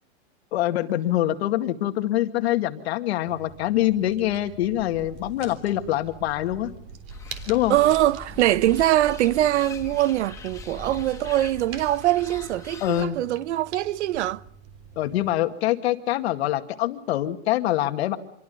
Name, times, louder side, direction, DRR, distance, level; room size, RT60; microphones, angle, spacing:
voice 1, 0.5-6.7 7.5-7.8 12.8-13.2 15.0-18.2, left 14 dB, 65° left, 2.1 m, -24 dB
sound 1, 3.3-15.3, right 6 dB, 40° right, 3.5 m, -45 dB
sound 2, 7.1-13.0, left 4 dB, 10° left, 1.8 m, -41 dB
voice 2, 7.7-14.4, right 14 dB, 75° right, 0.9 m, -22 dB
27.5 x 23.0 x 5.4 m
supercardioid pair, 170°, 35 cm